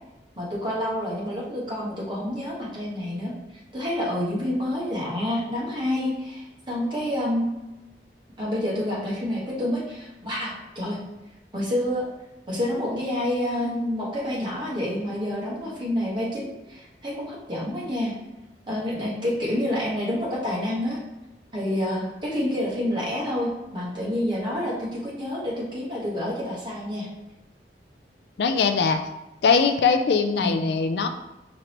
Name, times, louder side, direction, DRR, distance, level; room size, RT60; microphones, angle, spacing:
voice 1, 0.4-3.3 3.7-7.5 8.4-11.0 11.5-12.1 12.5-18.1 18.7-21.0 21.5-27.1 30.4-30.6, left 1 dB, 25° right, -6 dB, 1.3 m, -28 dB
voice 2, 28.4-29.0 29.4-31.1, left 5 dB, 65° left, 7 dB, 0.3 m, -21 dB
5.0 x 3.1 x 2.9 m, 0.98 s
head